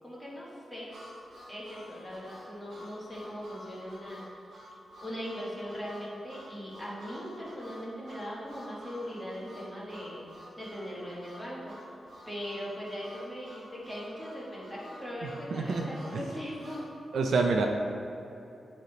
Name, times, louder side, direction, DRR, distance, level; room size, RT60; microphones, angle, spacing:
voice 1, 0.0-0.9 1.5-4.6 5.0-10.2 10.6-11.8 12.3-16.9, equal, 5° left, -6 dB, 1.3 m, -40 dB
Harmonica, 0.9-16.9, equal, 55° right, 1.1 m, -50 dB
voice 2, 15.5-15.9 16.1-16.2 17.1-17.7, right 4 dB, 75° right, 2 dB, 0.4 m, -26 dB
9.0 x 3.5 x 3.9 m, 2.8 s
wide cardioid pair, 175°, 0 cm